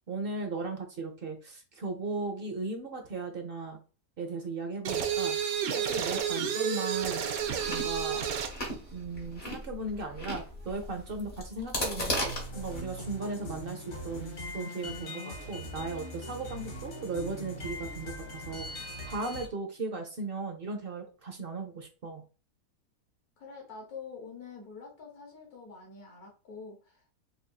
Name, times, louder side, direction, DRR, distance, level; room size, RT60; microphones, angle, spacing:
voice 1, 0.1-3.8 4.2-5.4 5.8-7.2 7.7-8.2 8.9-22.2, right 3 dB, 50° right, 4 dB, 0.7 m, -37 dB
sound 1, 4.8-8.6, right 8 dB, 80° right, 1.1 m, -31 dB
Chewing mastication, 7.4-12.8, left 1 dB, 35° left, 1.4 m, -37 dB
sound 2, 12.1-19.4, equal, 55° left, 1.4 m, -41 dB
voice 2, 23.4-27.2, left 5 dB, 85° left, 0 dB, 1.5 m, -46 dB
5.5 x 2.5 x 2.3 m, 0.35 s
omnidirectional pair, 1.5 m